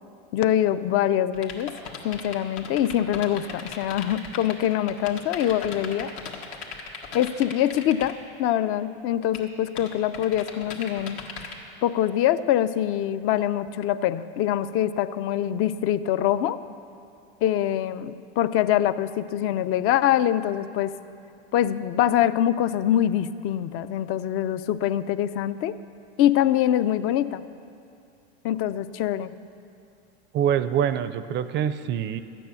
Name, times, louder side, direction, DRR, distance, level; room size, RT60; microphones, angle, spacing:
voice 1, 0.3-1.8 2.0-6.1 7.1-11.2 11.8-16.6 17.4-20.9 21.5-25.7 26.2-27.4 28.4-29.3, left 11 dB, 45° left, 14 dB, 0.5 m, -24 dB
sound 1, 1.3-8.1 9.3-9.4 9.8-11.5, left 6 dB, 75° left, 1.9 m, -37 dB
voice 2, 30.3-32.2, right 9 dB, 35° right, 13 dB, 0.4 m, -25 dB
13.5 x 9.3 x 7.0 m, 2.6 s
supercardioid pair, 115°, 32 cm